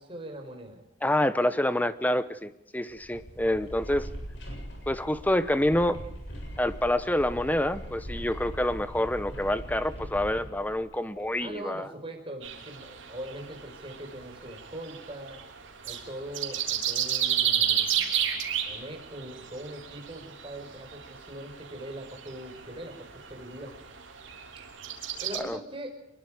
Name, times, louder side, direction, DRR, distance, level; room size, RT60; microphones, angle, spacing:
voice 1, 0.0-0.8 11.4-15.4 15.8-23.8 25.2-25.9, right 1 dB, 25° right, 3 dB, 4.8 m, -41 dB
voice 2, 1.0-4.1 4.9-6.0 6.6-11.9 25.4-25.6, left 1 dB, 10° left, 13 dB, 0.9 m, -27 dB
sound 1, 2.9-11.4, equal, 60° left, 7.7 m, -41 dB
sound 2, 12.4-25.4, right 9 dB, 70° right, 3.3 m, -33 dB
24.5 x 21.5 x 5.0 m, 0.83 s
head